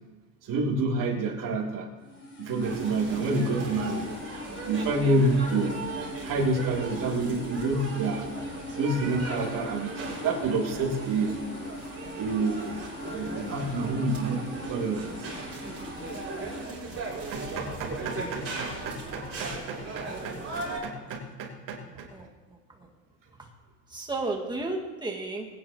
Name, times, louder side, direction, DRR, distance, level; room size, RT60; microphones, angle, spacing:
voice 1, 0.4-1.9 2.4-4.1 4.6-5.8 6.2-8.2 8.8-11.3 12.2-14.4 14.7-15.6 17.3-22.1, right 2 dB, 50° right, -2 dB, 3.2 m, -29 dB
sound 1, 2.0-16.7, left 2 dB, 30° left, 4.3 m, -41 dB
sound 2, 2.6-20.8, right 3 dB, 30° right, 4.9 m, -38 dB
voice 2, 20.5-21.1 21.8-22.3 22.8-22.9 23.9-25.5, right 2 dB, 10° right, 0 dB, 1.9 m, -34 dB
21.0 x 10.0 x 3.0 m, 1.2 s
supercardioid pair, 100°, 42 cm